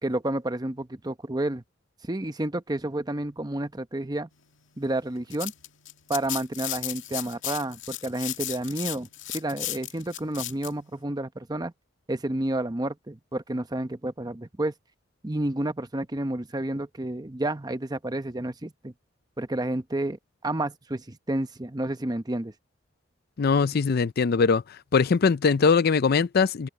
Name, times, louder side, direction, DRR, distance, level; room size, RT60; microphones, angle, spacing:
voice 1, 0.0-1.6 2.1-4.3 4.8-5.5 6.1-9.1 9.3-11.7 12.1-14.7 15.2-18.9 19.4-22.5, right 1 dB, 20° right, 0.9 m, -30 dB
sound 1, 5.1-10.7, left 14 dB, 80° left, 2.1 m, -35 dB
voice 2, 23.4-24.6 24.9-26.7, left 5 dB, 55° left, 0.5 m, -21 dB
open air
head